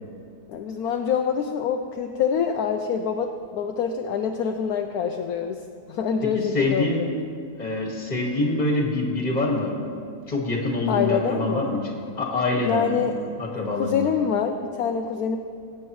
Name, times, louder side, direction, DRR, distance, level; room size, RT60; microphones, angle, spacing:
voice 1, 0.5-7.1 10.9-11.7 12.6-13.2 13.7-15.4, left 7 dB, 70° left, 4 dB, 1.0 m, -26 dB
voice 2, 6.5-7.0 7.6-9.7 10.3-13.0 13.4-14.1, left 2 dB, 25° left, -1 dB, 1.7 m, -25 dB
20.5 x 8.8 x 3.1 m, 2.3 s
omnidirectional pair, 1.8 m